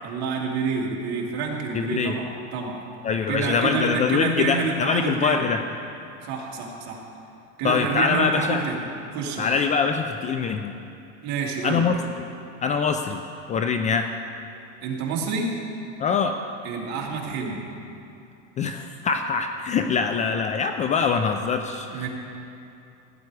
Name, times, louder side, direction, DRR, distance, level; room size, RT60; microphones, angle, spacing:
voice 1, 0.0-2.8 3.3-5.5 6.2-7.0 7.6-8.8 9.1-9.5 11.2-11.8 14.8-15.5 16.6-17.7 21.9-22.1, right 5 dB, 50° right, -1 dB, 2.3 m, -28 dB
voice 2, 1.7-2.1 3.0-5.6 7.6-8.6 9.4-10.7 11.6-12.0 12.6-13.2 13.5-14.1 16.0-16.3 18.6-22.1, left 5 dB, 20° left, 6 dB, 0.4 m, -23 dB
16.0 x 9.5 x 4.8 m, 2.7 s
supercardioid pair, 140°, 34 cm